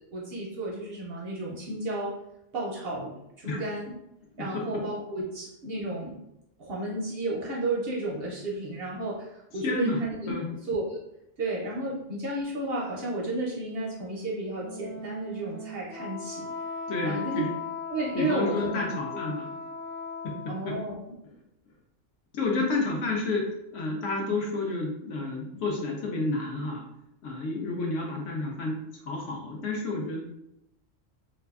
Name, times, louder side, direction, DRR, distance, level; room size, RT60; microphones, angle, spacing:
voice 1, 0.1-2.2 2.5-3.9 4.4-6.2 6.6-9.2 9.5-10.3 10.7-11.0 11.4-16.5 17.0-17.5 17.9-18.8 19.1-19.2 20.5-21.1, right 2 dB, 65° right, -3 dB, 0.6 m, -32 dB
voice 2, 9.5-10.0 10.3-10.4 16.9-17.5 18.1-19.5 20.2-20.8 22.3-26.8 27.2-28.8 29.1-30.2, left 3 dB, 75° left, -1 dB, 0.9 m, -30 dB
Wind instrument woodwind instrument, 14.5-20.7, left 4 dB, 50° left, 1.0 m, -38 dB
2.6 x 2.3 x 2.3 m, 0.83 s
omnidirectional pair, 1.3 m